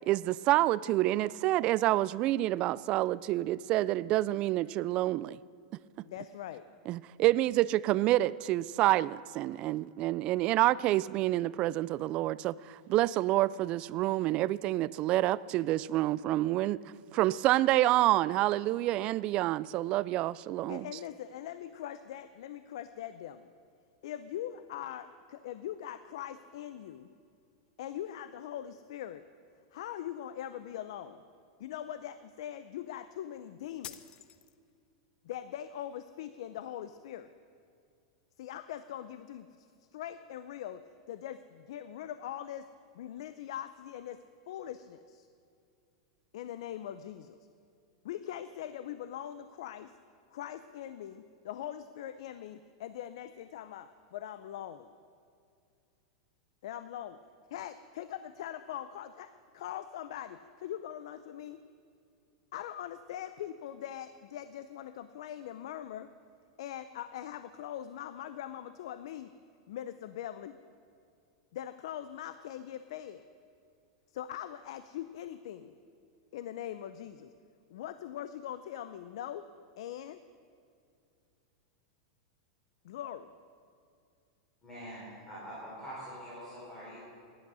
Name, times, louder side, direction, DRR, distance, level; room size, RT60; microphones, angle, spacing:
voice 1, 0.1-5.4 6.9-16.8 17.1-20.9, right 16 dB, 35° right, 20 dB, 0.3 m, -28 dB
voice 2, 6.0-6.6 20.7-23.5 24.0-27.1 27.8-29.2 29.7-31.2 31.6-34.0 35.2-37.3 38.4-39.7 39.9-40.8 41.1-42.7 42.9-44.2 44.5-45.3 46.3-47.4 48.0-49.9 50.3-54.9 56.6-57.2 57.5-61.6 62.5-66.1 66.6-69.3 69.7-70.6 71.5-73.2 74.1-75.7 76.3-77.3 77.7-79.5 79.8-80.2 82.8-83.3, left 11 dB, 70° left, 12 dB, 0.6 m, -42 dB
sound 1, 33.8-34.9, left 11 dB, 35° left, 0.7 m, -47 dB
voice 3, 84.6-87.0, equal, 15° left, -9 dB, 4.9 m, -44 dB
17.0 x 11.0 x 6.2 m, 2.4 s
supercardioid pair, 145°, 3 cm